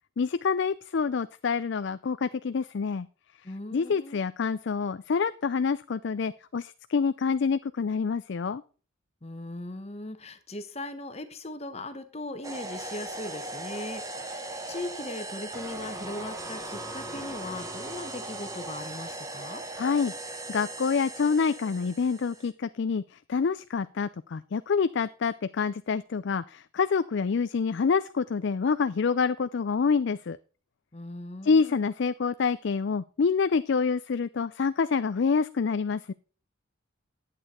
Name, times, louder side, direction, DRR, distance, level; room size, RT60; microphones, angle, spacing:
voice 1, 0.2-3.1 3.7-8.6 19.8-30.4 31.4-36.1, left 5 dB, 55° left, 13 dB, 0.4 m, -27 dB
voice 2, 3.4-4.2 9.2-19.6 30.9-31.8, left 1 dB, 30° left, 9 dB, 1.0 m, -39 dB
sound 1, 12.4-22.5, right 2 dB, 15° right, 1.1 m, -38 dB
11.0 x 8.4 x 4.3 m, 0.37 s
head